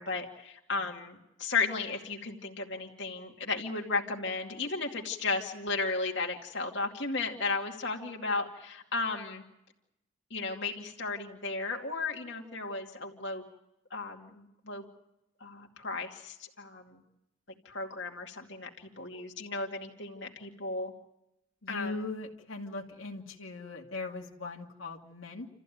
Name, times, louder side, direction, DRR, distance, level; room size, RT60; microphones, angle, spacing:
voice 1, 0.0-9.4 10.3-13.5 13.9-14.8 15.4-17.0 17.6-20.9 21.7-21.9, left 3 dB, 60° left, 1 dB, 2.4 m, -34 dB
voice 2, 21.6-25.5, left 3 dB, 85° left, 0 dB, 2.3 m, -39 dB
29.0 x 14.5 x 9.3 m, 0.88 s
head